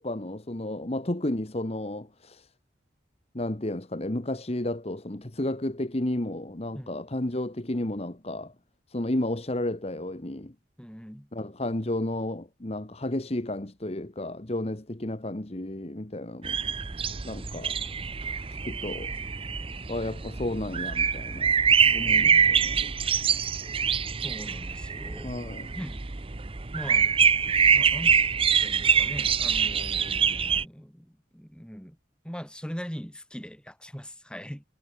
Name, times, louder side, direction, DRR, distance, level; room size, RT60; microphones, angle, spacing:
voice 1, 0.0-2.5 3.3-8.5 8.9-10.5 11.3-16.6 17.2-17.8 18.5-19.1 19.9-21.5 21.9-22.9 25.2-25.7, left 1 dB, 35° left, 1.4 m, -32 dB
voice 2, 10.8-11.3 21.8-22.5 24.2-25.4 25.7-26.0 26.7-27.1 27.7-28.2 28.6-32.0 32.2-34.6, equal, 5° left, 6.9 m, -41 dB
sound 1, 16.4-30.6, right 6 dB, 30° right, 0.7 m, -25 dB
head